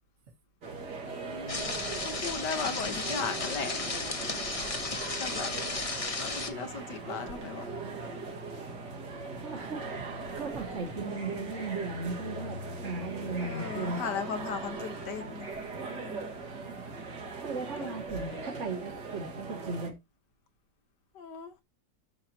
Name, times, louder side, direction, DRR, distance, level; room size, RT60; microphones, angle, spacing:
sound 1, 0.6-19.9, right 3 dB, 70° right, 2.3 m, -40 dB
voice 1, 1.2-3.9 5.2-5.5 6.2-7.7 13.4-15.5 15.9-16.3 17.8-18.0 21.2-21.5, left 6 dB, 70° left, 1.9 m, -37 dB
sound 2, 1.5-6.5, left 3 dB, 25° left, 1.0 m, -34 dB
voice 2, 9.4-14.0 16.5-16.9 17.4-19.9, right 3 dB, 45° right, 1.7 m, -37 dB
12.5 x 6.6 x 2.9 m
omnidirectional pair, 1.9 m